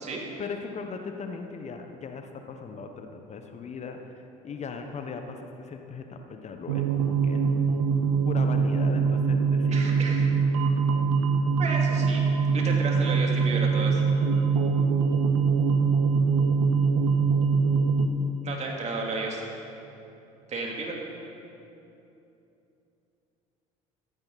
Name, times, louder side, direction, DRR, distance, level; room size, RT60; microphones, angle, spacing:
voice 1, 0.4-4.1 4.4-7.5 8.2-10.0, left 5 dB, 40° left, 5 dB, 1.2 m, -38 dB
sound 1, 6.7-18.1, right 5 dB, 75° right, 0.9 m, -23 dB
voice 2, 9.7-10.2 11.6-12.2 12.5-14.1 18.4-19.5 20.5-21.0, right 3 dB, 40° right, -1 dB, 3.1 m, -32 dB
15.0 x 14.5 x 4.2 m, 2.9 s
hypercardioid pair, 65°, 18 cm